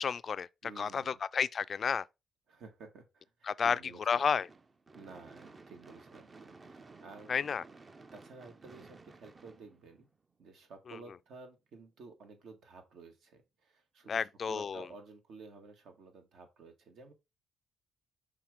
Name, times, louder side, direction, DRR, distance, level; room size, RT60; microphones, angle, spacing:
voice 1, 0.0-0.5 0.8-2.0 3.5-3.8 4.1-4.5 7.3-7.6 14.1-14.8, left 6 dB, 45° left, 0.3 m, -31 dB
voice 2, 0.6-1.2 2.5-4.3 4.9-7.4 8.1-10.1 10.4-17.1, right 4 dB, 75° right, 1.7 m, -53 dB
Gunshot gunfire / Fireworks, 4.2-10.4, right 3 dB, 30° right, 0.6 m, -55 dB
5.9 x 3.5 x 4.9 m
cardioid pair, 90°, 0 cm